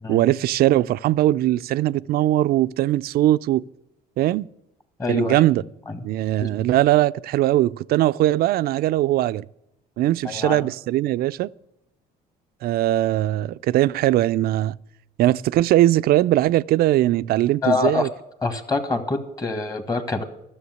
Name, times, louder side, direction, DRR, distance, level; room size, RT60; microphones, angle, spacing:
voice 1, 0.1-3.6 4.2-4.5 5.1-5.6 6.0-9.4 10.0-11.5 12.6-14.8 15.2-18.1, right 14 dB, 65° right, 0.4 m, -20 dB
voice 2, 5.0-5.4 5.9-6.1 6.4-6.5 10.2-10.7 17.6-18.1 18.4-20.2, left 3 dB, 20° left, 1.7 m, -25 dB
13.0 x 7.1 x 9.3 m
cardioid pair, 110°, 17 cm